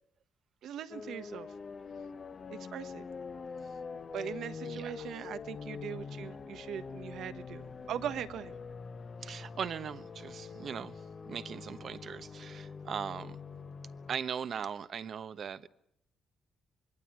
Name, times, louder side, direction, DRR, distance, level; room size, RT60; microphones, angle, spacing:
voice 1, 0.6-1.5 2.5-3.0 4.1-8.5, right 9 dB, 75° right, 1.3 m, -40 dB
sound 1, 0.9-14.2, left 5 dB, 40° left, 1.2 m, -44 dB
voice 2, 4.6-5.3 9.2-13.4 14.1-15.7, right 7 dB, 55° right, 1.1 m, -40 dB
25.5 x 22.0 x 9.0 m
cardioid pair, 90°, 0 cm